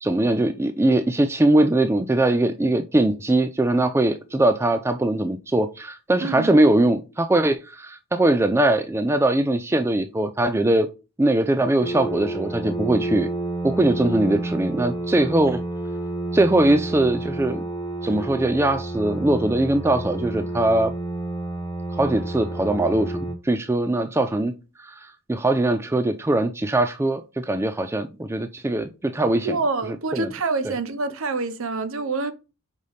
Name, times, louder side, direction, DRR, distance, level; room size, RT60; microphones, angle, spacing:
voice 1, 0.0-10.9 11.2-13.3 13.6-15.6 16.3-17.6 18.0-20.9 21.9-24.5 24.8-29.6 30.1-30.3 30.6-30.8, right 1 dB, 10° right, 0.3 m, -21 dB
sound 1, 11.8-23.3, right 2 dB, 15° left, 1.1 m, -30 dB
voice 2, 29.4-32.3, right 3 dB, 65° right, 0.8 m, -26 dB
5.3 x 5.0 x 4.0 m
head